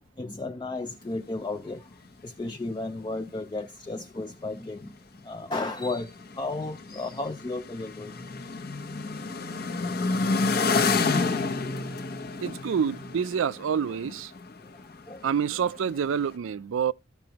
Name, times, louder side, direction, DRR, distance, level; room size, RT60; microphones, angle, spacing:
voice 1, 0.2-1.8 2.2-4.9 5.3-6.1 6.4-8.1 11.4-11.5 14.0-14.1 15.1-15.2, left 2 dB, 20° left, 0.4 m, -33 dB
sound 1, 3.3-3.4 3.6-3.7 4.9-5.0 5.5-5.6 5.8-14.8 15.3-16.2, left 4 dB, 50° left, 0.9 m, -29 dB
voice 2, 12.4-14.3 15.2-16.9, right 7 dB, 75° right, 0.4 m, -27 dB
14.0 x 6.0 x 2.9 m
head